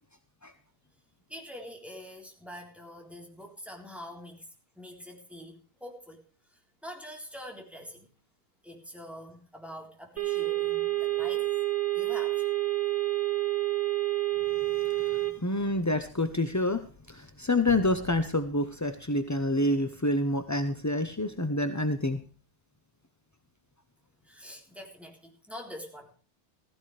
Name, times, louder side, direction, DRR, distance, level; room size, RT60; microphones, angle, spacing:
voice 1, 1.3-4.5 4.8-6.2 6.5-8.1 8.6-11.5 11.9-12.5 24.2-26.1, equal, ahead, 1 dB, 3.7 m, -45 dB
sound 1, 10.2-15.3, right 17 dB, 40° right, 1.9 m, -28 dB
voice 2, 15.4-16.8 17.1-22.2, left 1 dB, 20° left, 9 dB, 0.4 m, -27 dB
sound 2, 15.6-19.7, right 1 dB, 35° left, 4.7 m, -49 dB
15.5 x 15.5 x 3.3 m, 0.38 s
omnidirectional pair, 1.7 m